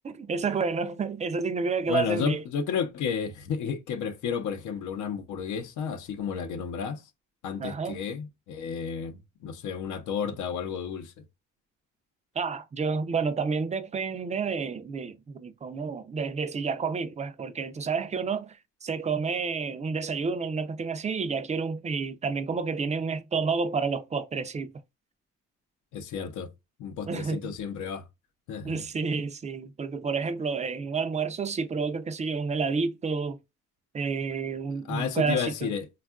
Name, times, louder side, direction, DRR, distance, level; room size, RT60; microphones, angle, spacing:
voice 1, 0.0-2.4 7.6-8.0 12.4-24.7 27.1-27.5 28.6-33.4 33.9-35.7, right 5 dB, 25° right, 0.4 m, -30 dB
voice 2, 1.9-7.0 7.4-11.1 25.9-26.5 26.8-28.1 28.5-28.8 34.9-35.9, left 7 dB, 75° left, 0.6 m, -32 dB
3.4 x 2.3 x 2.3 m
cardioid pair, 90°, 30 cm